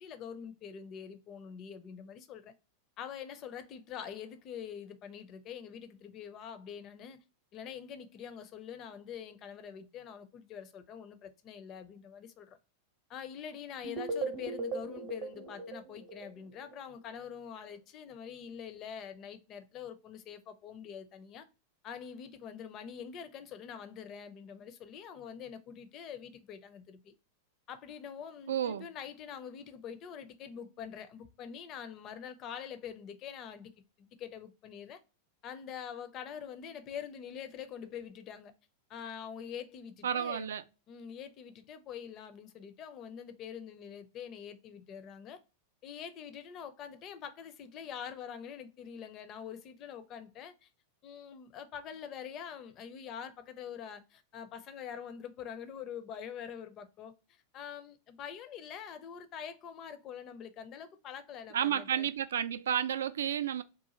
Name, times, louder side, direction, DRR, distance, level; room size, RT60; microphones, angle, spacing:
voice 1, 0.0-2.5 3.0-7.2 7.5-12.6 13.1-21.5 21.8-27.1 27.7-33.7 34.0-35.0 35.4-38.5 38.9-40.5 40.9-45.4 45.8-50.7 51.0-62.1, left 8 dB, 35° left, 0.5 m, -45 dB
sound 1, 13.8-16.8, right 3 dB, 40° right, 0.8 m, -38 dB
voice 2, 28.5-28.9 40.0-40.6 61.5-63.6, right 9 dB, 65° right, 0.3 m, -31 dB
3.7 x 2.4 x 2.9 m
figure-of-eight pair, 90°, 0 cm